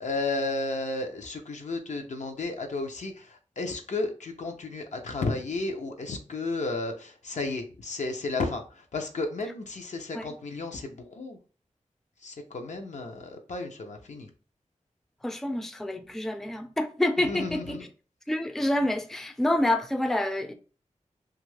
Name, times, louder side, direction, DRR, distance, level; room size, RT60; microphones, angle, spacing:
voice 1, 0.0-11.4 12.2-14.3 17.2-17.9, left 3 dB, 75° left, 0.6 m, -33 dB
voice 2, 15.2-17.9 18.3-20.5, left 1 dB, 5° left, 0.4 m, -28 dB
2.7 x 2.4 x 3.2 m
wide cardioid pair, 70°, 12 cm